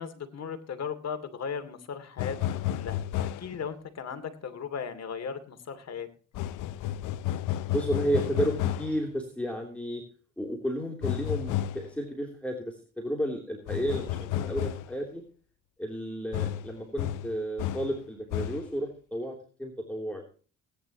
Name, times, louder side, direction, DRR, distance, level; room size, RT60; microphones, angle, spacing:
voice 1, 0.0-6.1, left 6 dB, 60° left, 8 dB, 2.7 m, -37 dB
sound 1, 2.2-3.6 6.3-9.0 11.0-11.9 13.7-15.0 16.3-18.0 18.3-18.7, left 12 dB, 90° left, 0.7 m, -31 dB
voice 2, 7.6-10.0 10.4-15.2 15.8-20.2, equal, 5° left, 0 dB, 3.1 m, -32 dB
19.0 x 10.5 x 3.0 m, 0.38 s
cardioid pair, 90°, 30 cm